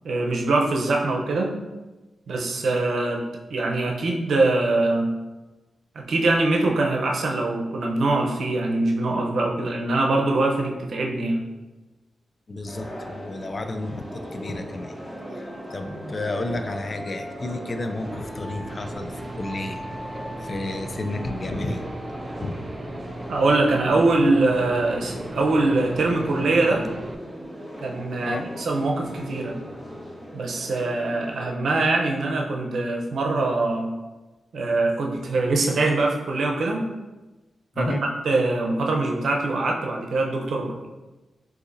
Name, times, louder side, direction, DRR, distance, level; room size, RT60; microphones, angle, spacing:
voice 1, 0.0-1.6 2.3-5.2 5.9-11.4 23.3-26.9 27.8-29.6 30.3-34.0 34.5-36.9 37.8-40.9, right 2 dB, 75° right, 1 dB, 0.7 m, -23 dB
voice 2, 12.5-14.9 15.3-19.8 20.4-21.8 22.4-22.6 28.2-28.5 37.7-38.1, left 2 dB, 40° left, 7 dB, 0.4 m, -31 dB
sound 1, 12.7-31.5, equal, 5° left, 1.1 m, -38 dB
Aircraft / Engine, 18.7-27.1, right 2 dB, 30° right, 0.3 m, -38 dB
6.6 x 2.7 x 2.6 m, 1.1 s
cardioid pair, 90°, 0 cm